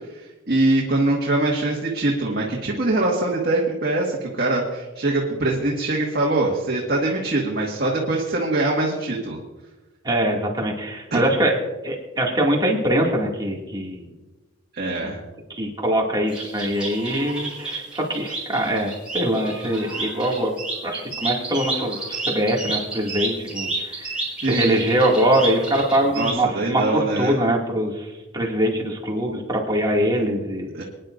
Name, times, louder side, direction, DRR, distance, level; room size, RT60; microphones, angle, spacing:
voice 1, 0.5-9.4 11.1-11.2 14.7-15.2 24.4-24.8 26.0-27.3 30.7-30.8, right 2 dB, 55° right, -3 dB, 1.8 m, -23 dB
voice 2, 10.0-11.6 11.8-14.1 15.0-15.2 15.5-20.6 20.8-24.1 24.4-28.1 28.3-30.7, right 1 dB, 20° right, -1 dB, 2.3 m, -23 dB
sound 1, 16.3-26.3, right 3 dB, 5° right, 5.2 m, -30 dB
25.0 x 10.5 x 2.6 m, 1.1 s
head